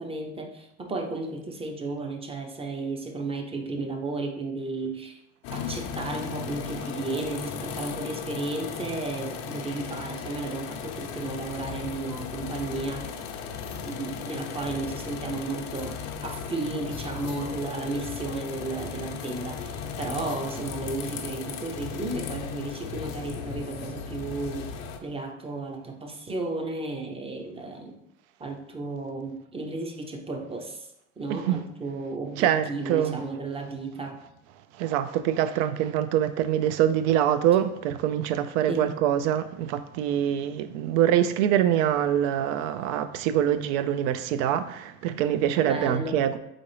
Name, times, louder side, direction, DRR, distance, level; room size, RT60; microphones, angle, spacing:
voice 1, 0.0-5.1 5.5-13.1 13.8-24.7 25.0-28.0 28.4-30.9 31.2-34.2 38.7-39.0 45.7-46.3, right 3 dB, 15° right, 0.6 m, -33 dB
sound 1, 5.4-25.0, left 7 dB, 75° left, 0.8 m, -36 dB
voice 2, 31.3-31.6 32.4-33.2 34.8-46.4, right 10 dB, 65° right, 0.5 m, -24 dB
4.1 x 3.7 x 3.2 m
supercardioid pair, 100°, 40 cm